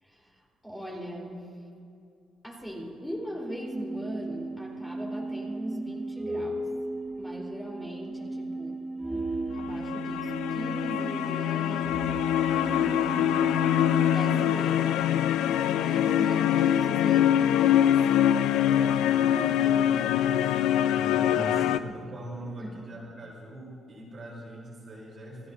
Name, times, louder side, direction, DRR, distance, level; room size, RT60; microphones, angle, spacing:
voice 1, 0.0-1.7 2.4-6.7 7.2-8.8 9.5-12.2 12.5-13.5 14.0-15.4 15.7-20.5 21.2-21.9 22.6-22.8, equal, 5° left, -3 dB, 4.1 m, -39 dB
sound 1, 3.4-14.6, right 2 dB, 10° right, 3.0 m, -35 dB
sound 2, 9.6-21.8, left 11 dB, 85° left, 0.4 m, -24 dB
voice 2, 20.9-25.5, right 1 dB, 45° right, -3 dB, 4.3 m, -41 dB
28.5 x 14.5 x 2.7 m, 2.7 s
cardioid pair, 90°, 0 cm